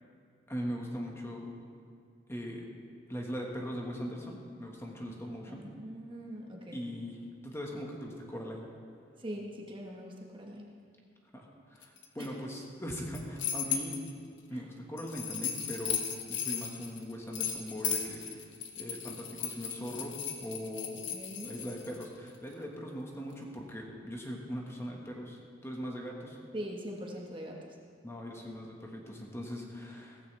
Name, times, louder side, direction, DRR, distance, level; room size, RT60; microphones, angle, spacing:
voice 1, 0.5-1.4 2.3-2.6 3.1-5.6 6.7-8.7 11.3-14.0 14.5-18.2 18.8-21.0 21.4-26.4 28.0-30.2, equal, 15° left, -1 dB, 1.5 m, -40 dB
voice 2, 5.5-6.8 9.2-10.7 12.2-12.3 14.5-14.6 21.1-21.5 26.5-27.6, equal, 25° right, -1 dB, 1.3 m, -42 dB
sound 1, 11.8-12.3 12.9-14.1 15.0-22.0, left 8 dB, 80° left, 1.1 m, -36 dB
16.5 x 14.5 x 3.4 m, 2.3 s
head